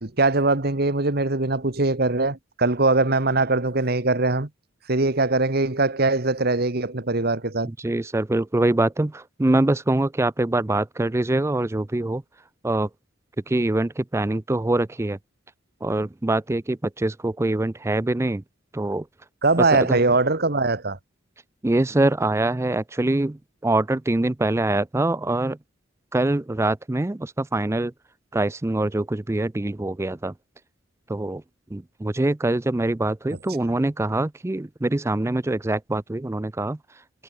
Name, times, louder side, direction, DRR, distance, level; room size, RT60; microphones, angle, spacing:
voice 1, 0.0-4.5 4.9-7.7 19.4-21.0, right 3 dB, 50° right, 1.6 m, -21 dB
voice 2, 7.6-12.2 12.6-12.9 13.5-15.2 15.8-18.4 18.7-19.1 19.6-20.0 21.6-25.6 26.1-27.9 28.3-30.3 31.1-31.4 31.7-36.8, right 2 dB, 15° right, 0.4 m, -24 dB
head